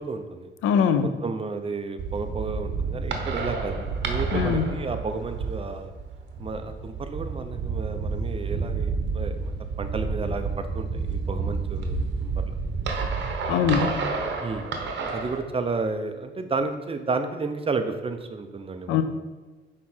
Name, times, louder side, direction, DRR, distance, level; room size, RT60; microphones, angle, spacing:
voice 1, 0.0-0.5 1.2-5.9 6.4-12.5 14.4-14.7 15.1-19.0, right 4 dB, 30° right, 7 dB, 0.7 m, -32 dB
voice 2, 0.6-1.1 4.3-4.6 13.5-14.0 18.9-19.0, left 7 dB, 90° left, 10 dB, 0.6 m, -22 dB
sound 1, 2.0-15.4, right 4 dB, 65° right, 1.1 m, -30 dB
6.2 x 4.7 x 4.4 m, 1.3 s
cardioid pair, 90°, 20 cm